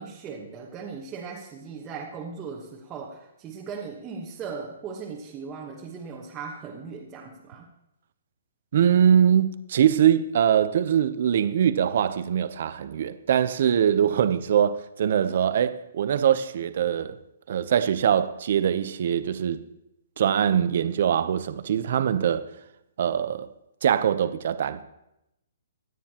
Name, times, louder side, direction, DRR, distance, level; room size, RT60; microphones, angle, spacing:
voice 1, 0.0-7.7, right 5 dB, 15° right, 1.2 m, -38 dB
voice 2, 8.7-17.2 17.5-19.6 20.2-22.4 23.0-23.5 23.8-24.8, right 9 dB, 50° right, 0.7 m, -22 dB
24.5 x 9.4 x 3.0 m
hypercardioid pair, 165°, 0 cm